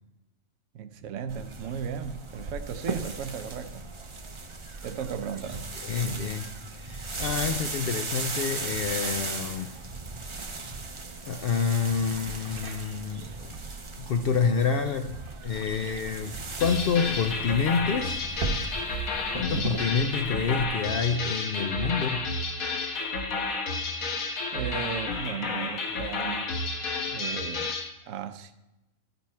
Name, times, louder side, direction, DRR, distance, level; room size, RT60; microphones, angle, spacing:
voice 1, 0.7-3.8 4.8-5.7 19.3-19.7 24.5-26.5 27.1-27.7 28.1-28.5, right 7 dB, 70° right, 1.0 m, -36 dB
sound 1, 0.9-18.8, right 3 dB, 85° right, 1.6 m, -44 dB
sound 2, 1.3-20.7, right 3 dB, 35° right, 0.5 m, -38 dB
voice 2, 5.9-6.5 6.8-9.8 11.3-13.6 14.0-15.1 15.4-18.2 18.8-18.9 19.3-22.2, left 6 dB, 65° left, 0.6 m, -28 dB
sound 3, 16.6-27.9, left 3 dB, 85° left, 1.5 m, -31 dB
13.0 x 5.4 x 4.3 m
omnidirectional pair, 1.4 m